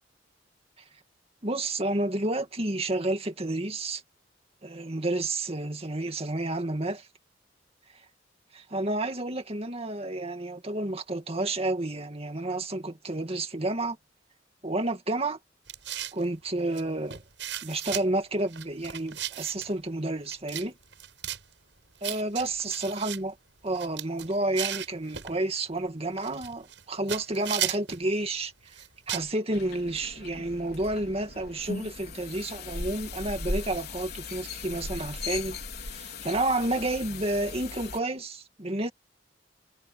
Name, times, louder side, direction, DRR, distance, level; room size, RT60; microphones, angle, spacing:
voice 1, 1.4-4.0 4.6-7.1 8.5-14.0 14.6-15.4 16.1-17.2 17.6-20.7 22.0-23.4 23.6-28.5 29.1-35.6 35.8-38.9, right 2 dB, 35° right, 2.3 m, -30 dB
sound 1, 15.7-16.2 16.7-16.8 17.1-18.0 18.5-19.7 20.3-20.7 20.9-21.4 22.0-23.2 23.7-25.3 26.2-26.8 27.1-28.0 28.7-29.3, right 11 dB, 80° right, 7.1 m, -35 dB
sound 2, 29.5-38.0, left 3 dB, 60° left, 4.3 m, -38 dB
head